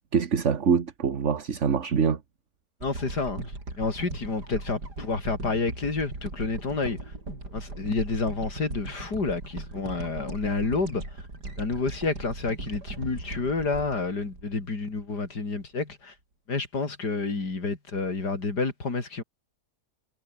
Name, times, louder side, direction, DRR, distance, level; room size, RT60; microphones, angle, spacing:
voice 1, 0.1-2.2, right 6 dB, 50° right, 1.7 m, -24 dB
voice 2, 2.8-3.4 3.8-7.1 7.5-11.2 11.6-16.1 16.5-19.2, left 3 dB, 85° left, 4.4 m, -29 dB
sound 1, 2.8-15.1 15.6-15.7, right 2 dB, 80° right, 6.9 m, -39 dB
omnidirectional pair, 1.7 m